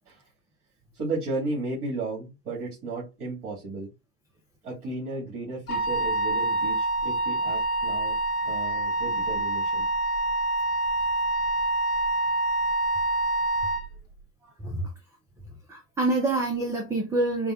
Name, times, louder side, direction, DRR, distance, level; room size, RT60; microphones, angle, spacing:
voice 1, 0.9-3.9 4.6-8.2 8.4-9.9, right 3 dB, 50° right, 2.1 m, -34 dB
Wind instrument woodwind instrument, 5.7-13.9, right 2 dB, 90° left, 1.1 m, -26 dB
voice 2, 14.6-14.9 15.7-17.5, right 2 dB, 5° right, 0.4 m, -26 dB
4.9 x 2.2 x 2.4 m
hypercardioid pair, 95°, 44 cm